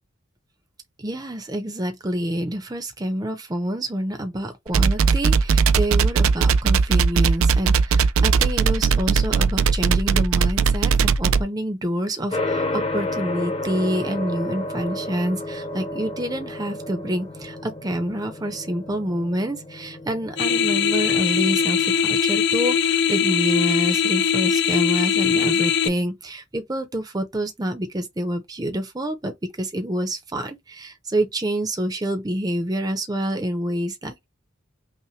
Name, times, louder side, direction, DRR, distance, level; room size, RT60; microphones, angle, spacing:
voice 1, 1.0-34.2, right 1 dB, 20° right, 0.6 m, -27 dB
sound 1, 4.7-11.4, right 5 dB, 80° right, 0.4 m, -18 dB
sound 2, 12.3-22.0, left 2 dB, 30° left, 0.8 m, -31 dB
sound 3, 20.4-25.9, left 7 dB, 55° left, 0.4 m, -21 dB
5.6 x 2.1 x 3.1 m
head